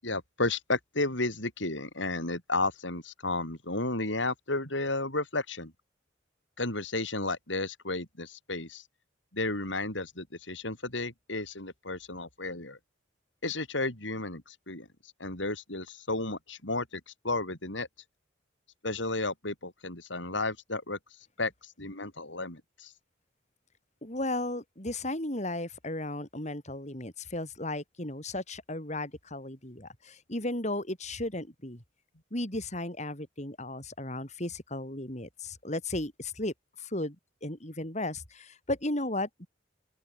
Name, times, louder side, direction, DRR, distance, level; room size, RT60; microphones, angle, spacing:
voice 1, 0.0-5.7 6.6-8.8 9.3-12.8 13.4-14.9 15.2-17.9 18.8-21.0 21.4-22.9, left 2 dB, 80° left, 7.7 m, -33 dB
voice 2, 24.0-31.8 32.3-37.2 37.4-39.5, left 1 dB, 40° left, 6.6 m, -35 dB
open air
head